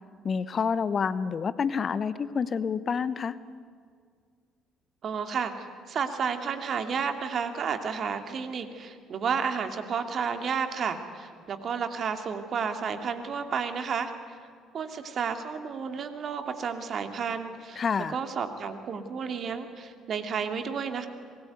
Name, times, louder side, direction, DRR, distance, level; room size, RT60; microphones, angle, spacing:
voice 1, 0.2-3.4 17.8-18.2, left 6 dB, 45° left, 16 dB, 1.0 m, -28 dB
voice 2, 5.0-14.4 14.7-17.8 18.1-21.1, right 6 dB, 50° right, 7 dB, 2.6 m, -31 dB
26.0 x 21.5 x 9.4 m, 2.1 s
figure-of-eight pair, 50°, 0 cm